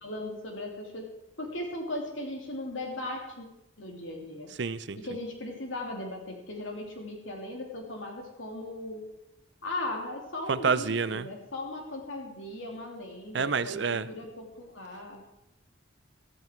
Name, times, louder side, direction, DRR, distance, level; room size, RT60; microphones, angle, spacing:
voice 1, 0.0-1.1 1.4-3.5 3.8-4.5 4.9-9.1 9.6-15.2, left 1 dB, 75° left, 1 dB, 3.1 m, -38 dB
voice 2, 4.6-5.0 10.5-11.3 13.3-14.1, right 5 dB, 60° right, 15 dB, 0.6 m, -28 dB
14.0 x 14.0 x 4.6 m, 0.89 s
head